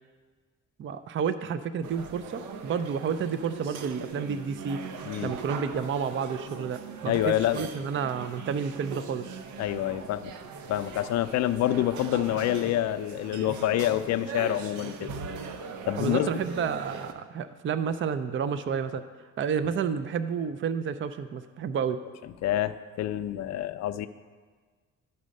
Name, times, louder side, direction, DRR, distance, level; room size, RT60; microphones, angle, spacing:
voice 1, 0.8-4.8 5.2-9.3 15.9-19.0 19.4-22.0, right 6 dB, 40° right, 12 dB, 0.5 m, -30 dB
sound 1, 1.8-17.1, right 5 dB, 80° right, 0.7 m, -40 dB
voice 2, 7.1-7.7 9.6-10.3 10.7-15.1 15.9-16.3 22.4-24.1, left 12 dB, 60° left, 11 dB, 0.4 m, -27 dB
11.0 x 4.2 x 6.4 m, 1.5 s
cardioid pair, 90°, 30 cm